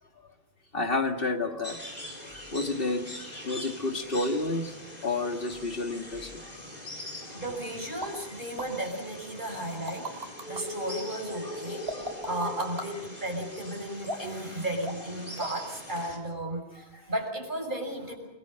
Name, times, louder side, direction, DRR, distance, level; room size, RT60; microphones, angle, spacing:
voice 1, 0.7-1.8 2.5-3.1 3.4-4.7 5.0-6.5 7.3-7.4 11.4-11.5 11.9-12.1, left 2 dB, 60° left, 4 dB, 2.1 m, -30 dB
Costa Rica Rainforest, 1.6-16.2, left 1 dB, 40° left, 4.6 m, -42 dB
voice 2, 7.3-18.2, right 1 dB, 50° right, 1 dB, 6.5 m, -35 dB
sound 1, 8.0-8.1 8.6-8.7 9.5-10.6 11.9-12.9 14.0-14.4 14.8-15.1 15.4-15.7 16.0-16.1, right 1 dB, 70° right, 3.8 m, -36 dB
29.5 x 20.5 x 6.5 m, 0.93 s
omnidirectional pair, 1.1 m